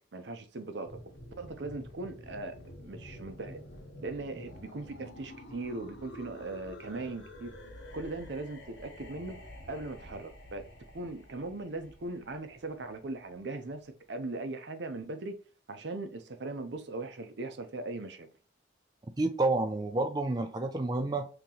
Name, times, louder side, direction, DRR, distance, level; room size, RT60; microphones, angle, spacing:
voice 1, 0.1-1.1 1.4-3.6 4.0-7.5 7.9-9.4 9.7-10.7 10.9-15.4 15.7-18.3, right 2 dB, 70° right, 0.6 m, -39 dB
sound 1, 0.8-13.5, left 1 dB, 85° left, 1.3 m, -49 dB
voice 2, 19.2-21.3, right 2 dB, 20° right, 0.3 m, -29 dB
3.8 x 2.9 x 2.8 m
head